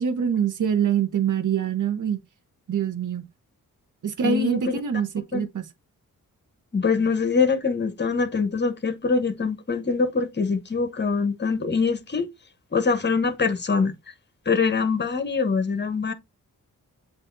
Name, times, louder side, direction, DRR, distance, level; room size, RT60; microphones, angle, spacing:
voice 1, 0.0-2.2 2.7-3.3 4.0-5.7, right 7 dB, 60° right, 0.9 m, -24 dB
voice 2, 4.2-4.8 5.3-5.5 6.7-12.3 12.7-13.9 14.5-16.1, left 5 dB, 30° left, 1.0 m, -24 dB
7.6 x 2.6 x 2.6 m
cardioid pair, 50°, 35 cm